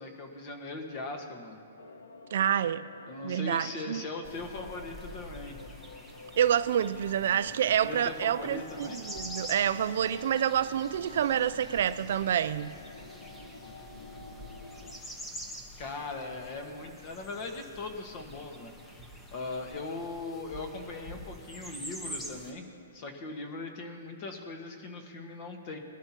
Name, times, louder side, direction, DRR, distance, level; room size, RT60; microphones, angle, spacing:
voice 1, 0.0-1.6 3.1-5.6 7.8-9.0 15.8-18.7 19.3-22.6 22.9-25.8, left 3 dB, 35° left, 1.4 m, -39 dB
sound 1, 1.8-15.0, left 3 dB, 85° left, 1.2 m, -49 dB
voice 2, 2.3-2.8 3.2-4.0 6.4-12.7, right 9 dB, 55° right, 0.4 m, -28 dB
sound 2, 4.2-22.5, equal, 5° left, 1.0 m, -46 dB
21.0 x 12.5 x 2.9 m
hypercardioid pair, 160°, 0 cm